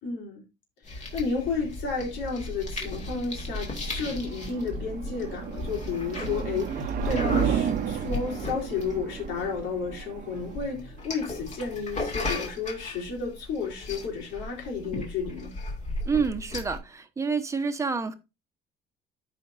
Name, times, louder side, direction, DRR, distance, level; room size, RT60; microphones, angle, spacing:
voice 1, 0.0-0.4 0.8-15.5, left 4 dB, 85° left, 3.8 m, -32 dB
sound 1, 0.8-16.8, left 2 dB, 40° left, 2.4 m, -36 dB
sound 2, 2.8-11.8, right 8 dB, 50° right, 0.8 m, -33 dB
voice 2, 16.0-18.1, right 5 dB, 15° right, 1.0 m, -28 dB
13.5 x 5.1 x 2.6 m
cardioid pair, 140°, 18 cm